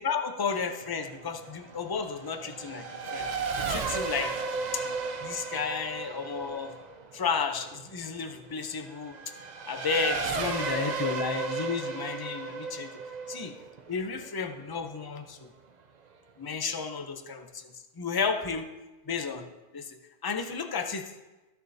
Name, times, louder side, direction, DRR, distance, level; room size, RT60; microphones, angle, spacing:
voice 1, 0.0-3.3 3.6-4.4 4.7-4.8 5.2-6.7 7.1-9.2 9.7-12.9 13.3-13.5 13.9-15.5 16.4-18.7 19.1-19.5 19.7-21.1, left 5 dB, 40° left, 6 dB, 0.3 m, -32 dB
Race car auto racing / Accelerating revving vroom, 0.8-14.9, right 4 dB, 45° right, 0.6 m, -35 dB
14.5 x 6.6 x 2.7 m, 1.1 s
omnidirectional pair, 1.3 m